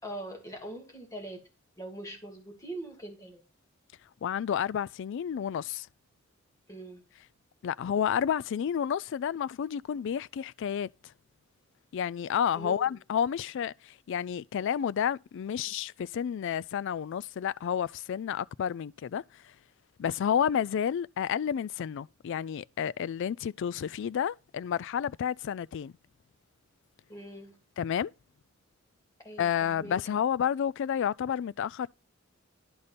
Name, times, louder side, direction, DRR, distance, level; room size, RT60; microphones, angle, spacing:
voice 1, 0.0-1.4 1.8-3.4 6.7-7.0 12.5-13.0 27.1-27.6 29.2-30.0, right 1 dB, 15° left, 2.6 m, -42 dB
voice 2, 4.2-5.9 7.6-10.9 11.9-19.2 20.0-25.9 27.8-28.1 29.4-31.9, left 8 dB, 65° left, 0.3 m, -30 dB
11.0 x 4.2 x 5.1 m
head